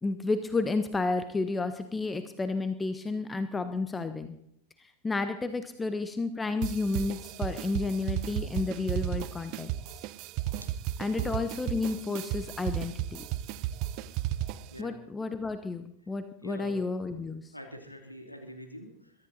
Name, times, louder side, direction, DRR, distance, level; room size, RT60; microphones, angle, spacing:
voice 1, 0.0-4.4 4.8-9.7 11.0-13.2 14.8-17.5, left 3 dB, 10° left, 10 dB, 1.2 m, -31 dB
sound 1, 6.6-14.8, right 13 dB, 40° right, 0.8 m, -34 dB
voice 2, 16.4-16.8 17.5-19.1, equal, 90° left, 4 dB, 2.7 m, -44 dB
22.5 x 13.5 x 4.1 m, 0.72 s
figure-of-eight pair, 90°, 0 cm